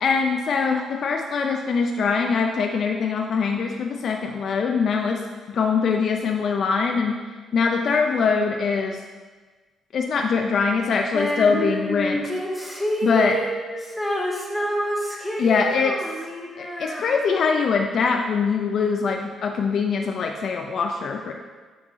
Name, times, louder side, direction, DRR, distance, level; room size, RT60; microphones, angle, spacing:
voice 1, 0.0-5.2 5.5-7.2 7.5-9.0 9.9-12.2 13.0-13.4 15.4-16.0 16.6-21.3, left 5 dB, 60° left, 3 dB, 0.5 m, -23 dB
Female singing, 11.1-17.6, equal, 5° left, 1.1 m, -28 dB
7.6 x 4.7 x 3.6 m, 1.4 s
cardioid pair, 90°, 0 cm